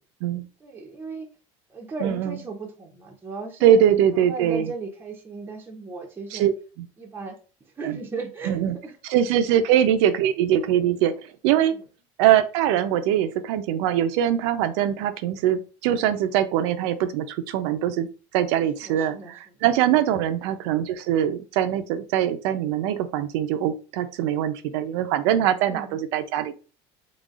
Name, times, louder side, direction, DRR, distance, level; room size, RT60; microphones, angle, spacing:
voice 1, 0.6-1.3 1.7-6.5 7.0-7.4 7.8-8.9 9.5-9.6 11.7-11.8 18.7-19.3 25.5-26.0, right 4 dB, 15° right, 1 dB, 0.7 m, -36 dB
voice 2, 2.0-2.4 3.6-4.7 6.3-6.9 7.8-8.0 8.4-8.7 9.0-11.1 11.4-11.7 12.2-18.1 18.3-26.6, right 10 dB, 75° right, 10 dB, 0.6 m, -22 dB
3.9 x 3.6 x 2.4 m, 0.35 s
cardioid pair, 150°, 15 cm